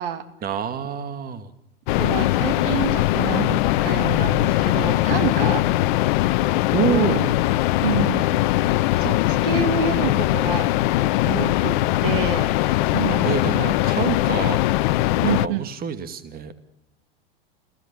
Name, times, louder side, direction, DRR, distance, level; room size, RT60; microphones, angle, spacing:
voice 1, 0.4-1.5 6.7-7.4 13.2-14.6 15.2-16.6, right 7 dB, 30° right, 10 dB, 2.4 m, -27 dB
sound 1, 1.9-15.5, left 16 dB, 55° left, 0.9 m, -21 dB
voice 2, 2.0-5.7 6.2-6.4 6.8-7.2 7.8-8.7 8.9-10.7 11.3-12.6 12.9-13.7 15.2-15.7, right 9 dB, 65° right, 9 dB, 2.4 m, -28 dB
29.5 x 17.0 x 7.2 m, 0.80 s
hypercardioid pair, 95°, 30 cm